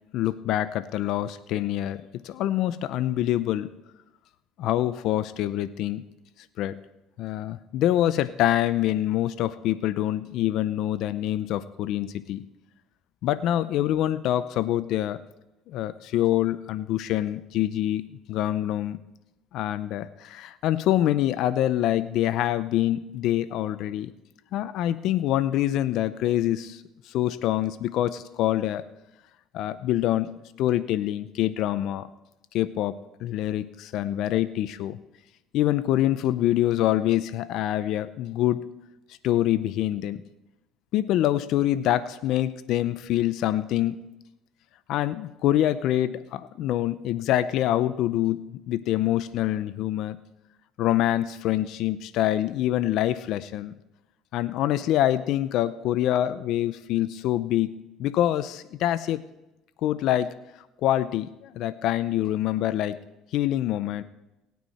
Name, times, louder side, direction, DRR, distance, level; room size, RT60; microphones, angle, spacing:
voice 1, 0.1-3.7 4.6-6.0 6.6-6.8 7.2-12.4 13.2-15.2 15.7-18.0 18.3-19.0 19.5-24.1 24.5-26.8 27.1-28.8 29.5-32.1 32.5-33.0 33.2-35.0 35.5-38.7 39.2-40.2 40.9-44.0 44.9-50.2 50.8-53.7 54.3-57.7 58.0-59.2 59.8-60.3 60.8-61.3 61.6-63.0 63.3-64.0, left 13 dB, 65° left, 14 dB, 0.6 m, -25 dB
19.0 x 9.4 x 4.2 m, 0.95 s
cardioid pair, 110°, 0 cm